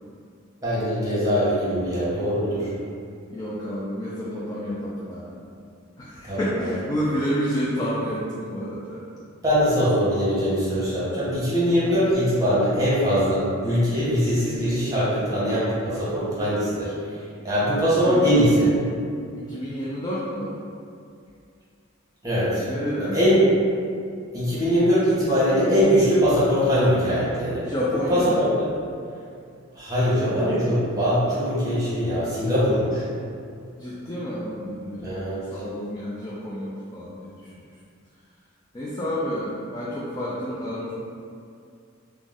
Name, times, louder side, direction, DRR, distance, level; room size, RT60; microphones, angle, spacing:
voice 1, 0.6-2.7 6.2-6.7 9.4-16.9 17.4-18.7 22.2-22.6 23.0-23.5 24.3-27.6 28.1-28.7 29.7-33.0 35.0-35.5, equal, 20° right, -11 dB, 0.9 m, -22 dB
voice 2, 3.3-5.3 6.0-9.0 11.8-12.0 18.0-18.4 19.4-20.6 22.7-23.2 27.6-28.3 33.8-35.1 35.5-37.5 38.7-40.9, equal, 20° left, -7 dB, 0.3 m, -29 dB
2.5 x 2.1 x 3.4 m, 2.3 s
head